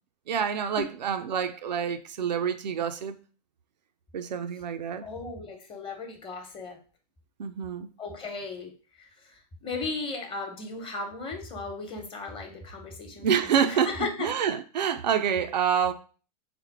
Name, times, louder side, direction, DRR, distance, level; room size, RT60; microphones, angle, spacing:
voice 1, 0.3-3.2 4.1-5.1 7.4-7.9 13.2-15.9, right 7 dB, 85° right, 0.5 m, -27 dB
voice 2, 5.0-6.8 8.0-8.7 9.0-14.3, left 3 dB, 25° left, 1.0 m, -36 dB
4.2 x 2.1 x 4.2 m
hypercardioid pair, 105°, 21 cm